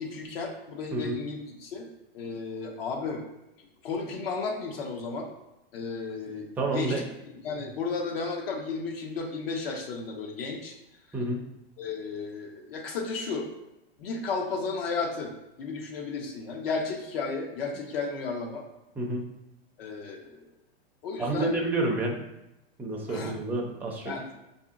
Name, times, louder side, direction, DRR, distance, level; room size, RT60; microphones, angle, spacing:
voice 1, 0.0-1.9 2.1-3.2 3.8-5.3 5.7-6.5 6.7-7.0 7.4-10.7 11.8-13.5 14.0-15.3 15.6-18.6 19.8-20.4 21.0-21.5 23.1-23.4 24.0-24.4, left 4 dB, 70° left, 1 dB, 0.9 m, -33 dB
voice 2, 6.6-7.0 11.1-11.4 19.0-19.2 21.2-22.2 22.8-24.1, right 2 dB, 5° right, -1 dB, 0.3 m, -29 dB
5.0 x 2.7 x 2.4 m, 0.91 s
supercardioid pair, 140°, 31 cm